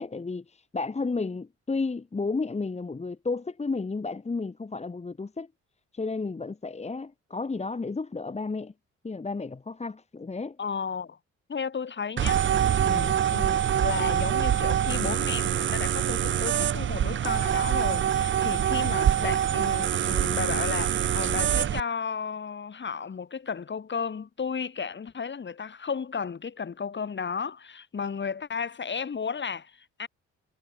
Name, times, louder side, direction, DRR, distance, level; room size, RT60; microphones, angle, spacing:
voice 1, 0.0-5.5 5.9-8.7 9.0-10.6 12.8-13.1, left 3 dB, 20° left, 1.6 m, -32 dB
voice 2, 10.6-11.2 11.5-12.4 12.8-30.1, left 6 dB, 35° left, 2.9 m, -33 dB
sound 1, 12.2-21.8, right 9 dB, 40° right, 0.6 m, -25 dB
cardioid pair, 90°, 30 cm